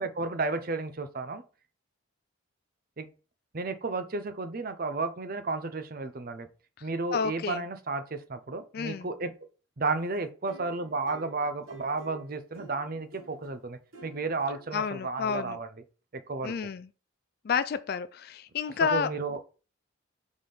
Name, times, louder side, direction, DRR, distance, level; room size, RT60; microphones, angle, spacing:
voice 1, 0.0-1.4 3.0-3.1 3.5-6.5 6.8-9.3 9.8-15.8 16.1-16.5 18.7-19.5, right 3 dB, 45° right, 0.6 m, -33 dB
voice 2, 6.8-7.6 8.7-9.1 14.7-15.6 16.4-16.9 17.4-19.1, left 6 dB, 45° left, 0.3 m, -30 dB
sound 1, 10.5-13.5 13.9-14.8 15.3-15.6, right 3 dB, 80° right, 1.4 m, -50 dB
5.9 x 3.6 x 5.0 m
head